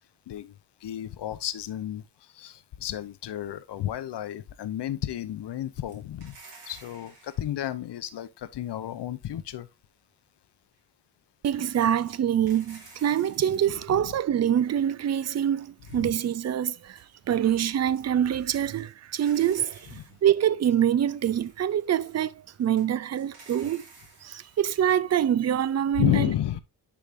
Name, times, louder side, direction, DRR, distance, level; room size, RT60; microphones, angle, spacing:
voice 1, 0.3-6.4 6.6-9.7 13.9-14.1 15.9-16.2 20.0-20.1 26.0-26.6, left 12 dB, 80° left, 0.8 m, -32 dB
sound 1, 5.9-7.4 11.7-13.7 14.4-14.5 14.7-15.0 15.3-17.5 17.8-18.9 19.2-20.1 20.9-24.6, right 3 dB, 85° right, 2.8 m, -53 dB
voice 2, 11.4-23.8 24.2-26.3, right 10 dB, 40° right, 0.4 m, -25 dB
10.0 x 4.8 x 2.5 m
wide cardioid pair, 155°, 40 cm